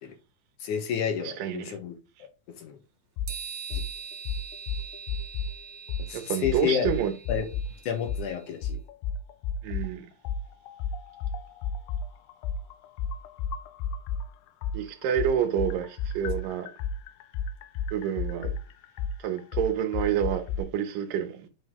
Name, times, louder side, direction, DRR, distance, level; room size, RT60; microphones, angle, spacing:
voice 1, 0.6-2.0 2.6-2.8 3.7-3.8 6.1-6.9 7.3-7.5 7.8-8.8, left 8 dB, 70° left, 2.2 m, -30 dB
voice 2, 1.2-1.8 6.1-7.2 9.6-10.1 14.7-16.7 17.9-18.5 19.2-21.5, right 9 dB, 75° right, 2.5 m, -28 dB
sound 1, 3.2-3.3 3.7-3.9 4.3-5.5 5.9-6.1 6.4-7.7 8.1-8.3 8.6-9.9 10.3-14.3 14.6-20.6, left 5 dB, 90° left, 2.3 m, -31 dB
sound 2, 3.3-8.6, right 6 dB, 55° right, 2.6 m, -43 dB
7.8 x 3.8 x 3.6 m
omnidirectional pair, 4.0 m